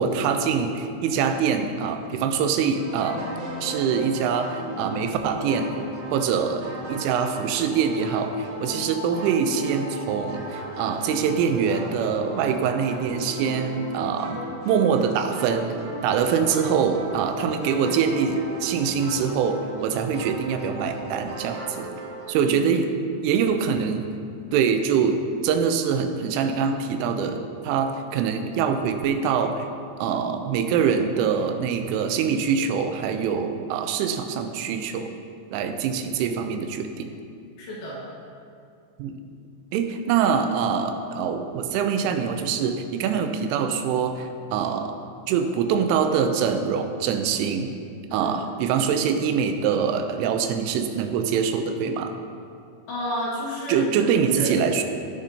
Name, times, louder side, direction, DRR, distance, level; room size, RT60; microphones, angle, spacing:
voice 1, 0.0-3.3 3.6-15.7 16.0-21.9 22.3-22.9 23.2-24.1 24.5-29.7 30.0-35.1 35.5-37.1 39.0-39.2 39.7-45.0 45.3-47.7 48.1-52.1 53.7-54.8, right 6 dB, 85° right, 7 dB, 3.2 m, -24 dB
sound 1, 2.7-22.3, equal, 65° right, 1.7 m, -36 dB
voice 2, 22.4-22.7 37.6-38.0 48.1-48.3 52.9-54.1 54.4-54.5, equal, 60° left, -7 dB, 3.0 m, -31 dB
16.5 x 6.3 x 2.8 m, 2.4 s
omnidirectional pair, 5.6 m